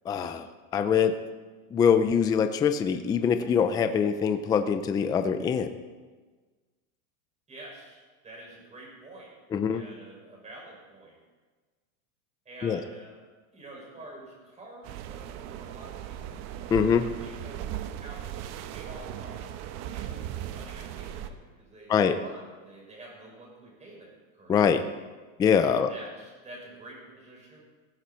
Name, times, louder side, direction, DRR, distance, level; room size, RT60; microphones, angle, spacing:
voice 1, 0.1-0.5 0.7-1.2 1.7-5.7 9.5-9.8 12.6-12.8 16.7-17.1 21.9-22.2 24.5-24.8 25.4-25.9, left 7 dB, 10° left, 9 dB, 0.4 m, -23 dB
voice 2, 7.5-9.3 9.7-11.1 12.4-13.2 13.5-18.3 18.7-24.8 25.6-27.6, right 1 dB, 15° right, -2 dB, 6.2 m, -48 dB
sound 1, 14.8-21.3, right 11 dB, 40° right, 1.0 m, -38 dB
16.0 x 15.5 x 4.4 m, 1.4 s
supercardioid pair, 145°, 42 cm